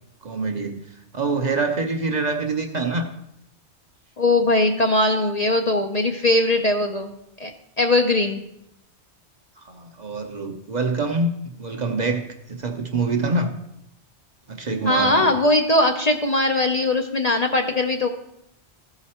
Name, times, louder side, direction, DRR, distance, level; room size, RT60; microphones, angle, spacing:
voice 1, 0.2-0.8 1.1-3.1 9.6-13.5 14.5-15.3, right 3 dB, 45° right, 4 dB, 0.7 m, -25 dB
voice 2, 4.2-7.5 7.8-8.4 14.8-18.1, left 2 dB, 45° left, 3 dB, 0.6 m, -20 dB
14.0 x 4.9 x 4.2 m, 0.81 s
omnidirectional pair, 1.2 m